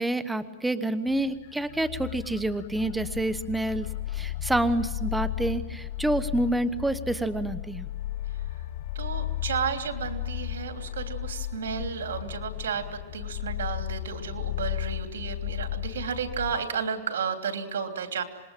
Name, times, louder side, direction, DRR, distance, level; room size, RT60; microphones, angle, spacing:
voice 1, 0.0-7.9, right 1 dB, 5° right, 12 dB, 1.0 m, -28 dB
sound 1, 1.1-16.7, left 14 dB, 55° left, 1.6 m, -34 dB
voice 2, 8.9-18.2, right 6 dB, 85° right, 6 dB, 3.2 m, -32 dB
26.0 x 21.5 x 9.0 m, 1.1 s
supercardioid pair, 140°, 0 cm